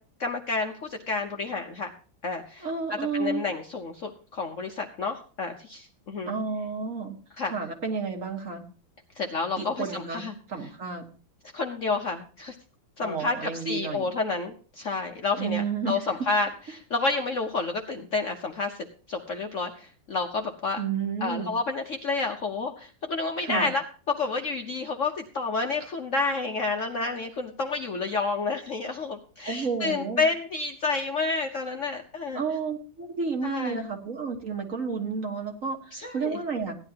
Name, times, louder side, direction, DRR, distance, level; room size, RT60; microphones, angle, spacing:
voice 1, 0.2-1.9 2.2-6.3 7.4-7.5 9.2-10.3 11.5-12.6 13.0-18.8 19.1-20.8 21.2-32.4 33.4-33.8 35.9-36.4, left 3 dB, 50° left, 3 dB, 1.0 m, -30 dB
voice 2, 2.6-3.4 6.3-7.2 7.5-8.6 9.6-10.2 10.5-11.1 13.0-14.1 15.4-16.0 20.8-21.5 23.4-23.7 29.5-30.3 32.4-36.8, right 5 dB, 45° right, 3 dB, 1.8 m, -31 dB
16.5 x 10.5 x 2.8 m, 0.39 s
omnidirectional pair, 2.1 m